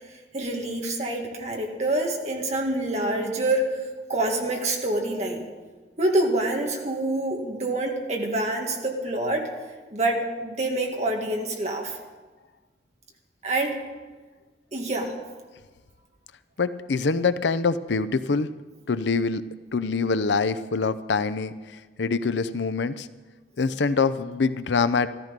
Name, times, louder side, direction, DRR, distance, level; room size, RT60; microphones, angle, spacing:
voice 1, 0.1-3.8 4.1-5.5 6.0-9.5 9.9-12.0 13.4-13.8 14.7-15.1, right 1 dB, 40° right, 1 dB, 1.9 m, -26 dB
voice 2, 16.6-18.5 18.9-19.4 19.7-21.5 22.0-23.1 23.6-25.1, left 4 dB, 80° left, 14 dB, 0.6 m, -24 dB
13.5 x 13.5 x 5.2 m, 1.3 s
head